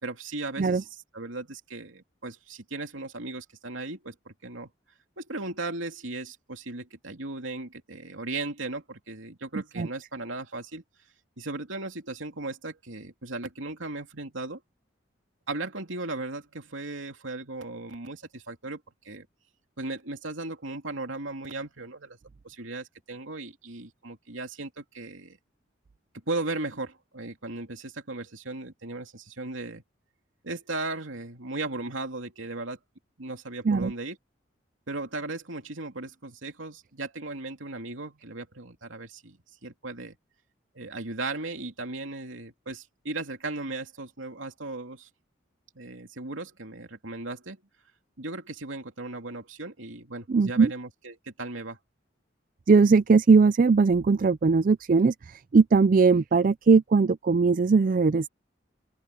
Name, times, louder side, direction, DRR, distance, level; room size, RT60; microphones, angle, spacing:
voice 1, 0.0-0.9 1.1-4.7 5.2-10.8 11.4-14.6 15.5-19.3 19.8-22.2 22.4-25.4 26.3-29.8 30.4-32.8 33.2-34.2 34.9-40.2 40.7-45.1 45.7-47.6 48.2-51.8, right 2 dB, 90° right, 3.0 m, -37 dB
voice 2, 50.3-50.7 52.7-58.3, right 4 dB, 45° right, 0.4 m, -20 dB
open air
head